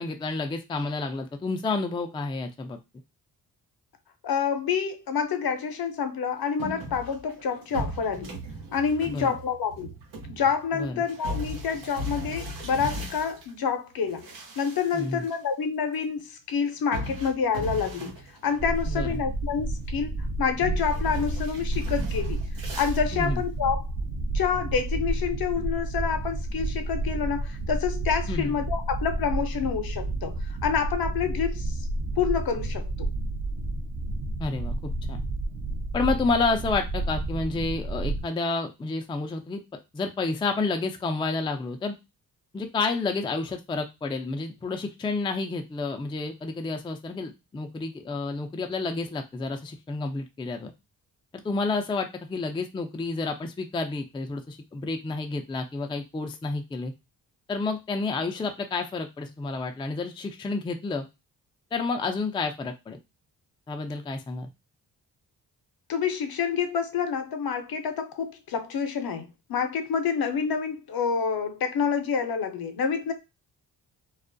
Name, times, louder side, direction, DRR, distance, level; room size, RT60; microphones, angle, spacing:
voice 1, 0.0-2.8 9.0-9.4 10.7-11.0 14.9-15.2 18.9-19.2 23.1-23.4 28.3-28.6 34.4-35.2 35.9-39.6 39.9-41.9 42.5-50.7 51.4-56.9 57.5-61.1 61.7-63.0 63.7-64.5, left 3 dB, 15° left, 0.4 m, -30 dB
voice 2, 4.2-8.3 8.7-9.9 10.3-14.3 14.6-18.1 18.4-20.1 20.4-22.4 22.8-23.9 24.3-31.8 32.2-33.1 65.9-73.1, left 6 dB, 55° left, 0.7 m, -28 dB
sound 1, 6.6-13.5 14.0-15.4 15.6-15.7 16.9-19.2 19.5-20.0 20.6-23.0, equal, 90° right, 0.8 m, -37 dB
sound 2, 18.6-38.2, right 2 dB, 50° right, 0.6 m, -31 dB
2.3 x 2.0 x 2.5 m
supercardioid pair, 45°, 43 cm